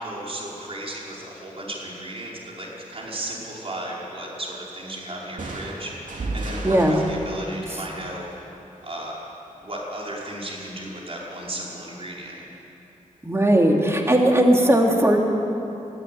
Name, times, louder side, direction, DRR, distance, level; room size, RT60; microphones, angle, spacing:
voice 1, 0.0-8.3 8.8-9.2 9.6-12.5, right 1 dB, 45° right, -4 dB, 5.3 m, -35 dB
sound 1, 5.4-9.1, right 2 dB, 65° right, 3.0 m, -34 dB
voice 2, 6.6-7.0 13.2-15.2, right 1 dB, 20° right, 1 dB, 2.8 m, -18 dB
21.5 x 13.5 x 9.4 m, 3.0 s
wide cardioid pair, 85°, 14 cm